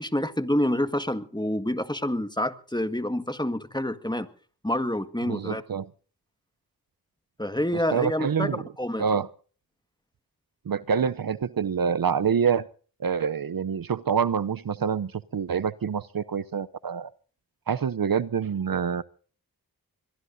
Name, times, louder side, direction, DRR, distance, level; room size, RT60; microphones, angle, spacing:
voice 1, 0.0-4.3 4.6-5.6 7.4-8.5 8.8-9.0, left 1 dB, 10° left, 1.7 m, -27 dB
voice 2, 5.3-5.9 7.9-8.6 9.0-9.3 10.7-12.7 13.0-17.1 17.7-19.0, right 7 dB, 65° right, 0.7 m, -26 dB
22.5 x 22.5 x 2.7 m
cardioid pair, 40°, 38 cm